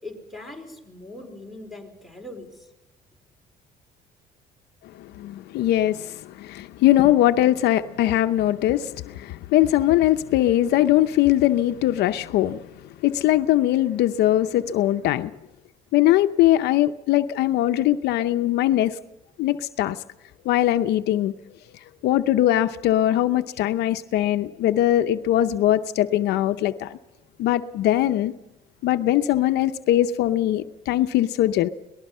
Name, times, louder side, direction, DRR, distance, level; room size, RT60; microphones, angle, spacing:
voice 1, 0.0-2.7, left 2 dB, ahead, 4.5 m, -40 dB
voice 2, 4.9-15.3 15.9-19.0 19.4-20.0 20.4-21.3 22.0-27.0 27.4-28.3 28.8-31.7, left 13 dB, 80° left, 0.7 m, -21 dB
24.5 x 19.5 x 5.5 m
cardioid pair, 110°, 17 cm